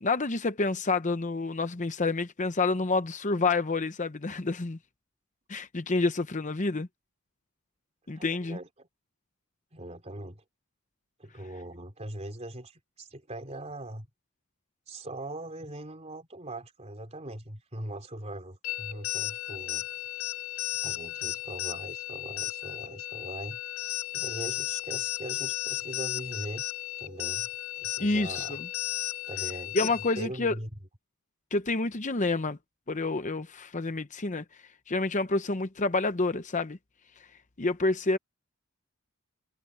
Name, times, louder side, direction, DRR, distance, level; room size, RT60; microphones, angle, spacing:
voice 1, 0.0-4.8 5.5-6.9 8.1-8.6 28.0-28.4 29.7-30.6 31.5-32.6 32.9-34.4 34.9-36.8 37.6-38.2, left 3 dB, 35° left, 0.8 m, -28 dB
voice 2, 8.1-8.9 9.7-10.4 11.2-14.1 14.9-19.9 20.8-23.9 24.1-26.7 27.0-27.5 27.8-28.6 29.3-29.8 30.2-30.7, right 1 dB, 30° right, 3.3 m, -41 dB
sound 1, 18.6-30.2, left 14 dB, 65° left, 0.5 m, -34 dB
head